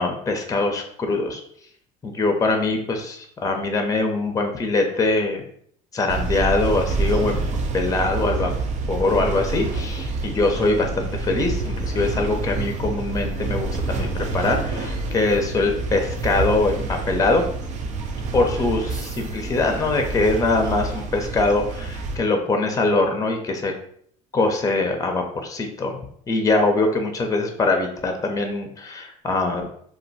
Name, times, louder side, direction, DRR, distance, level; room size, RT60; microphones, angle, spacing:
voice 1, 0.0-1.4 2.0-5.4 5.9-7.4 7.7-8.5 8.9-17.4 18.3-23.7 24.3-26.0 26.3-29.7, left 3 dB, 20° left, 4 dB, 0.6 m, -23 dB
sound 1, 6.1-22.2, right 3 dB, 50° right, 0.5 m, -27 dB
2.4 x 2.2 x 4.0 m, 0.64 s
supercardioid pair, 85°, 16 cm